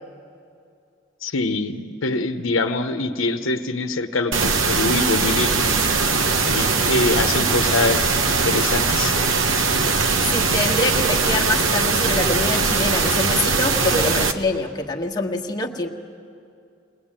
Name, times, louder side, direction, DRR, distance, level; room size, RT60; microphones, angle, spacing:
voice 1, 1.2-4.3 4.7-5.8 6.4-9.2, left 3 dB, 85° left, 7 dB, 1.0 m, -24 dB
sound 1, 4.3-14.3, right 4 dB, 80° right, 1.1 m, -20 dB
voice 2, 10.3-15.9, left 2 dB, 20° left, -1 dB, 1.4 m, -25 dB
21.5 x 20.5 x 8.9 m, 2.4 s
head